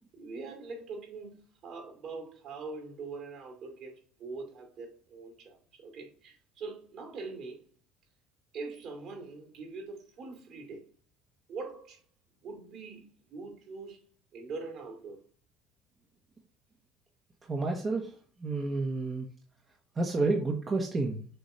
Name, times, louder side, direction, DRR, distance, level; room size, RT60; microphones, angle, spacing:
voice 1, 0.1-7.6 8.5-10.9 11.5-12.0 12.4-14.1 14.3-15.2, right 4 dB, 55° right, 2.6 m, -43 dB
voice 2, 17.5-18.1 18.4-19.3 20.0-21.3, right 3 dB, 25° right, 1.0 m, -30 dB
6.9 x 3.1 x 5.5 m
supercardioid pair, 105°, 0 cm